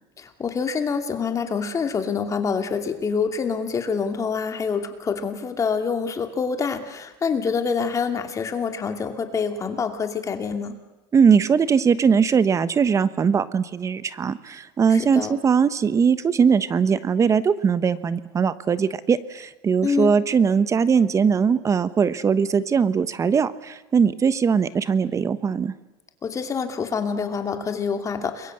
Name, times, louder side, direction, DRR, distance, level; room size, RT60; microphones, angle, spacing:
voice 1, 0.2-10.7 14.9-15.4 19.8-20.1 26.2-28.5, left 5 dB, 25° left, 6 dB, 2.7 m, -26 dB
voice 2, 11.1-25.7, right 6 dB, 25° right, 14 dB, 1.2 m, -20 dB
30.0 x 22.5 x 8.0 m, 1.0 s
supercardioid pair, 125°, 12 cm